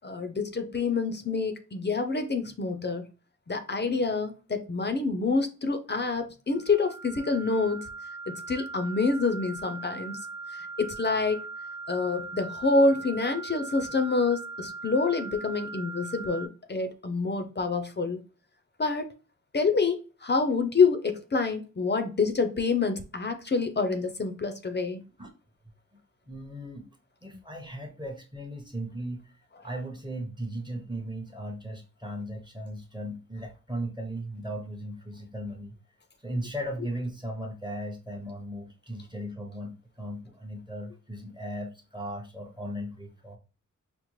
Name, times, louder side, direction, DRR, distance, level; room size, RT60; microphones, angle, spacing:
voice 1, 0.0-3.0 3.5-7.8 8.3-10.2 10.8-11.4 11.9-18.2 18.8-19.1 19.5-25.0, left 4 dB, 35° left, 0.5 m, -27 dB
sound 1, 6.5-16.5, right 4 dB, 60° right, 0.7 m, -40 dB
voice 2, 26.3-26.9 27.2-29.2 29.6-35.7 36.2-43.4, right 1 dB, 15° right, 0.7 m, -37 dB
5.0 x 2.0 x 3.0 m
wide cardioid pair, 100°, 32 cm